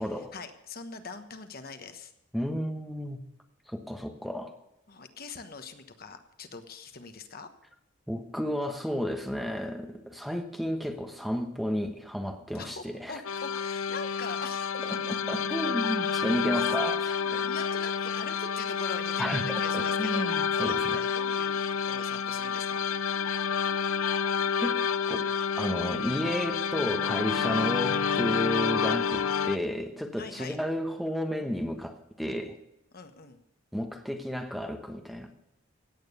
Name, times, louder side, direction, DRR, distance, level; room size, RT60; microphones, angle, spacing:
voice 1, 0.0-2.1 4.9-7.5 12.5-15.1 16.5-16.8 17.3-23.2 30.2-30.6 32.9-33.4, left 4 dB, 45° left, 8 dB, 1.2 m, -42 dB
voice 2, 2.3-3.2 3.7-4.5 8.1-13.2 15.1-17.5 19.2-21.0 24.6-24.8 25.1-25.2 25.6-32.6 33.7-35.3, equal, ahead, 5 dB, 1.1 m, -32 dB
sound 1, 13.2-29.6, left 6 dB, 80° left, 0.6 m, -29 dB
16.5 x 9.1 x 6.8 m, 0.85 s
head